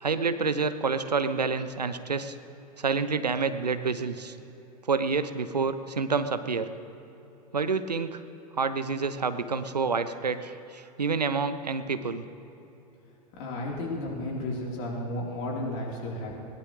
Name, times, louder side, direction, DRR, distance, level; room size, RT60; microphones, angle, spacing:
voice 1, 0.0-2.4 2.8-4.4 4.9-6.7 7.5-8.2 8.6-12.3, right 4 dB, 85° right, 11 dB, 0.8 m, -28 dB
voice 2, 13.4-16.3, left 1 dB, 50° left, -3 dB, 3.8 m, -33 dB
21.0 x 18.5 x 3.2 m, 2.9 s
figure-of-eight pair, 90°, 20 cm